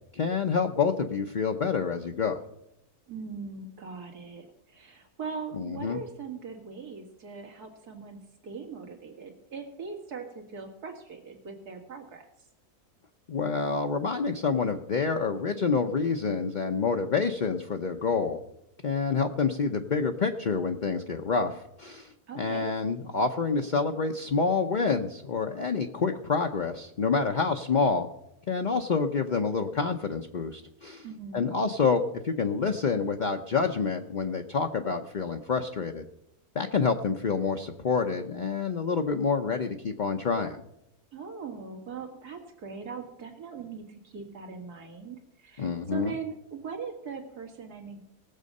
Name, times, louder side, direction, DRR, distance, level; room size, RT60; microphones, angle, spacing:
voice 1, 0.1-2.4 5.5-6.0 13.3-18.4 18.8-28.1 28.5-31.1 31.3-36.0 36.5-40.6 45.6-46.1, left 5 dB, 45° left, 4 dB, 0.6 m, -28 dB
voice 2, 3.1-12.3 22.3-22.7 31.0-31.5 41.1-48.0, right 5 dB, 85° right, 3 dB, 2.5 m, -40 dB
18.5 x 7.5 x 5.4 m, 0.85 s
omnidirectional pair, 1.6 m